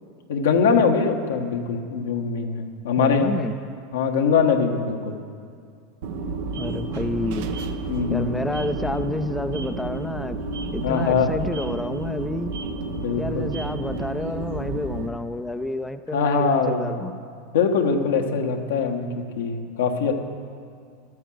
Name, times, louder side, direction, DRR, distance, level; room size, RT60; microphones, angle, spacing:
voice 1, 0.3-3.3 3.9-5.2 7.9-8.4 10.8-11.3 12.9-13.5 16.1-17.0 17.5-20.2, left 5 dB, 80° left, 3 dB, 1.3 m, -22 dB
voice 2, 3.0-3.5 6.6-7.5 8.1-10.4 10.7-12.5 13.2-17.1, left 2 dB, 10° left, 8 dB, 0.6 m, -29 dB
sound 1, 6.0-15.1, right 3 dB, 65° right, 1.0 m, -31 dB
13.0 x 9.4 x 7.7 m, 2.2 s
hypercardioid pair, 100°, 0 cm